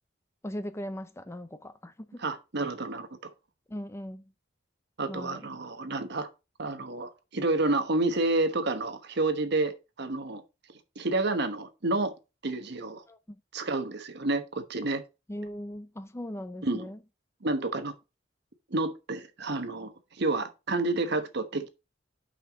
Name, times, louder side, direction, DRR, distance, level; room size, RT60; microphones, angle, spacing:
voice 1, 0.4-2.2 3.7-4.3 5.1-5.5 13.1-13.2 15.3-17.0, equal, 15° left, 0.5 m, -39 dB
voice 2, 2.2-3.3 5.0-6.3 6.6-10.4 11.0-12.1 12.4-13.0 13.5-15.0 16.6-16.9 17.4-17.9 18.7-21.7, right 2 dB, 60° right, 1.1 m, -29 dB
6.0 x 5.6 x 5.1 m
head